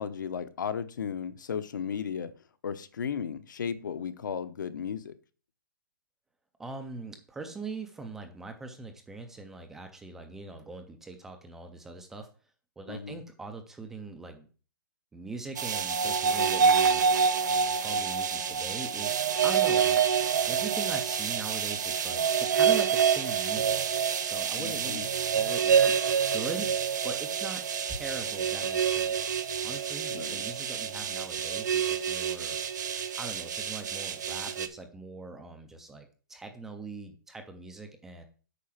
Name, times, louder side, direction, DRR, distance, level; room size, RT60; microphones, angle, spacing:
voice 1, 0.0-2.3 2.6-5.1 12.9-13.2 24.6-25.1 30.1-30.4, left 7 dB, 65° left, 12 dB, 0.9 m, -35 dB
voice 2, 6.6-12.3 12.8-14.5 15.1-17.1 17.8-20.0 20.5-23.8 24.2-29.2 29.6-32.6 33.2-38.2, right 3 dB, 5° right, 5 dB, 0.4 m, -41 dB
sound 1, 15.6-34.7, right 7 dB, 55° right, 1.1 m, -27 dB
8.4 x 5.7 x 5.7 m, 0.38 s
hypercardioid pair, 175°, 11 cm